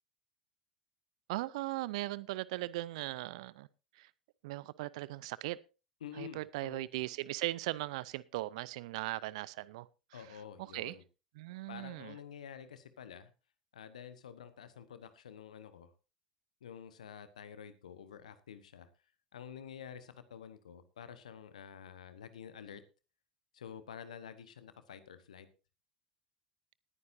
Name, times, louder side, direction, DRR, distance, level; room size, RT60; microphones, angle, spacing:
voice 1, 1.3-3.7 4.0-4.1 4.4-5.6 6.2-9.9 10.7-10.9 11.4-12.1, right 18 dB, 65° right, 0.6 m, -38 dB
voice 2, 6.0-6.9 10.1-11.0 11.7-13.3 13.7-15.9 16.6-18.9 19.3-22.8 23.5-25.5, left 8 dB, 75° left, 1.2 m, -49 dB
20.0 x 9.5 x 2.7 m
figure-of-eight pair, 75°, 4 cm